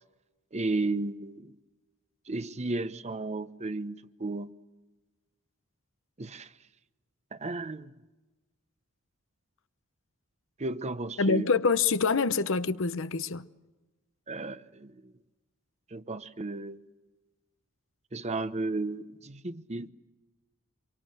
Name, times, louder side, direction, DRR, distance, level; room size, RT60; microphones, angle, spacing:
voice 1, 0.5-1.5 2.3-4.5 6.2-6.5 7.3-7.9 10.6-11.5 14.3-15.1 15.9-16.8 18.1-19.9, right 2 dB, 30° right, 0.9 m, -34 dB
voice 2, 11.2-13.5, left 4 dB, 65° left, 0.9 m, -26 dB
26.5 x 23.5 x 7.7 m
head